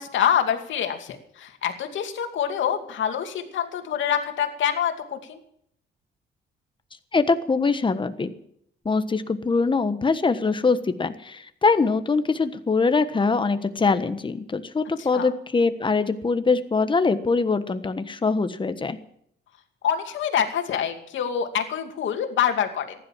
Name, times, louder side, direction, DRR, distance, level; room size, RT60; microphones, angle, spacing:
voice 1, 0.0-5.4 15.0-15.3 19.8-23.0, left 9 dB, 75° left, 5 dB, 2.5 m, -26 dB
voice 2, 7.1-8.3 8.8-19.0, left 4 dB, 25° left, 10 dB, 1.3 m, -23 dB
15.0 x 11.0 x 7.5 m, 0.71 s
cardioid pair, 90°, 20 cm